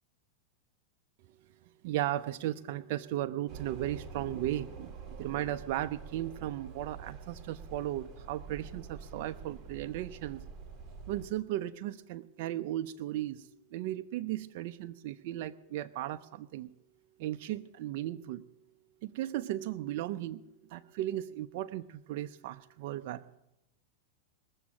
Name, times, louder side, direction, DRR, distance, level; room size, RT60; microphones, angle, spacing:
voice 1, 1.8-10.5 11.1-16.7 17.2-18.4 19.0-20.4 20.7-23.4, right 13 dB, 55° right, 9 dB, 0.5 m, -36 dB
sound 1, 3.5-11.3, right 5 dB, 25° right, 2.2 m, -46 dB
21.0 x 7.1 x 7.5 m, 0.88 s
supercardioid pair, 135°, 0 cm